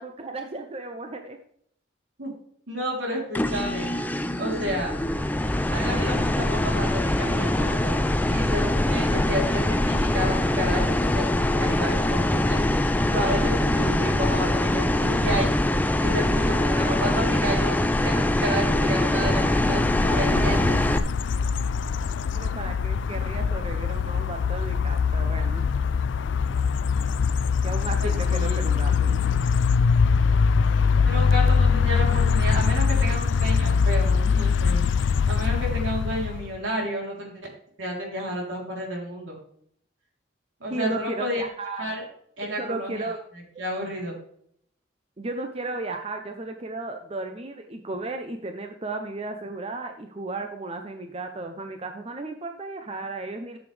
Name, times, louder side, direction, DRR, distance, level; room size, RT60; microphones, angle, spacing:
voice 1, 0.0-1.4 22.3-25.6 27.6-29.2 40.7-41.9 42.4-43.2 45.2-53.6, right 2 dB, 30° right, 5 dB, 0.7 m, -34 dB
voice 2, 2.7-3.9 4.4-5.0 5.7-8.0 8.3-15.5 15.9-20.8 28.0-28.6 31.1-37.5 37.8-39.4 40.6-41.4 41.8-42.0 42.4-43.1 43.6-44.2, equal, 80° right, -1 dB, 3.5 m, -31 dB
sound 1, 3.3-21.0, left 1 dB, 10° left, 0.4 m, -23 dB
sound 2, 19.0-36.6, left 5 dB, 70° left, 0.4 m, -23 dB
13.0 x 7.1 x 3.3 m, 0.67 s
head